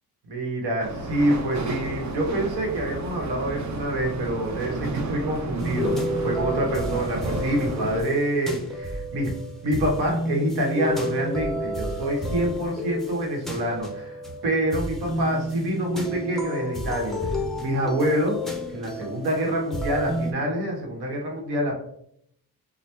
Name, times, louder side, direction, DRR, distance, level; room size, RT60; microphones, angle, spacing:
voice 1, 0.2-14.2 14.4-18.4 18.7-21.7, right 1 dB, 85° right, 0 dB, 1.0 m, -26 dB
sound 1, 0.8-8.0, right 3 dB, 50° right, 0.6 m, -32 dB
sound 2, 5.6-20.3, left 1 dB, ahead, 0.5 m, -31 dB
2.9 x 2.1 x 3.3 m, 0.70 s
cardioid pair, 85°, 38 cm